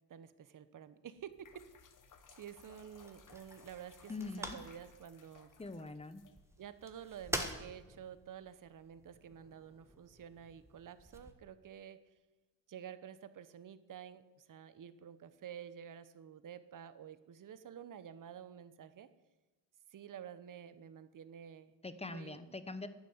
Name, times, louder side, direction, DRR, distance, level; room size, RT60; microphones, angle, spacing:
voice 1, 0.1-1.6 2.3-5.5 6.6-12.0 12.7-19.1 19.9-21.7 22.0-22.6, right 9 dB, 45° right, 14 dB, 1.0 m, -50 dB
sound 1, 1.1-8.1, left 6 dB, 45° left, 1.4 m, -63 dB
sound 2, 1.4-11.3, right 1 dB, 5° right, 1.5 m, -48 dB
voice 2, 4.1-4.6 5.6-6.2 21.8-22.9, left 3 dB, 15° left, 12 dB, 0.9 m, -43 dB
11.5 x 9.2 x 8.0 m, 1.1 s
cardioid pair, 100°, 45 cm